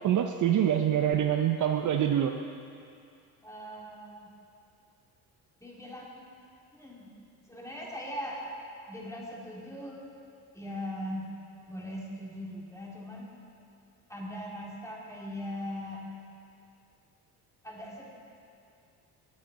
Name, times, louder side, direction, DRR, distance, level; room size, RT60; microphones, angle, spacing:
voice 1, 0.0-2.4, right 10 dB, 50° right, 5 dB, 0.6 m, -25 dB
voice 2, 3.4-4.3 5.6-6.4 6.7-7.1 7.5-8.5 8.9-10.0 10.5-11.3 11.7-13.3 14.1-16.0 17.6-18.1, equal, 5° left, -4 dB, 2.6 m, -40 dB
17.5 x 7.6 x 4.0 m, 2.4 s
cardioid pair, 95°, 41 cm